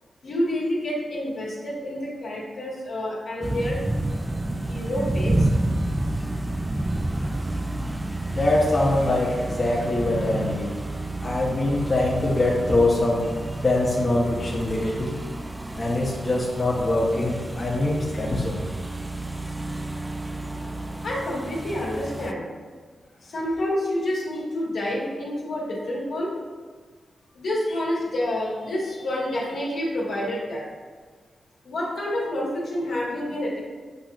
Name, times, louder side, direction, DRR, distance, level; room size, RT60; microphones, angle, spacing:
voice 1, 0.2-3.8 4.6-5.5 21.0-22.4 23.2-26.3 27.3-30.6 31.6-33.6, left 1 dB, 75° left, -6 dB, 1.5 m, -28 dB
sound 1, 3.4-22.3, right 1 dB, 20° right, 0.3 m, -30 dB
voice 2, 8.3-10.7 11.2-13.2 13.6-15.1 15.8-18.6, left 2 dB, 40° left, -5 dB, 1.0 m, -23 dB
7.7 x 2.7 x 2.5 m, 1.5 s
supercardioid pair, 45°, 0 cm